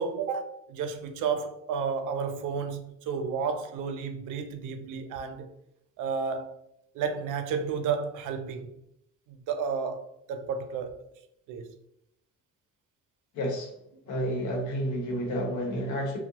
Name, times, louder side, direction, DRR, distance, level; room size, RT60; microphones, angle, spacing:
voice 1, 0.0-5.5 6.0-6.5 6.9-8.7 9.3-11.0 11.5-11.7, right 6 dB, 85° right, 0.5 m, -32 dB
voice 2, 13.3-13.7 14.1-16.2, equal, 80° left, 1.0 m, -30 dB
2.7 x 2.1 x 2.8 m
cardioid pair, 90°, 30 cm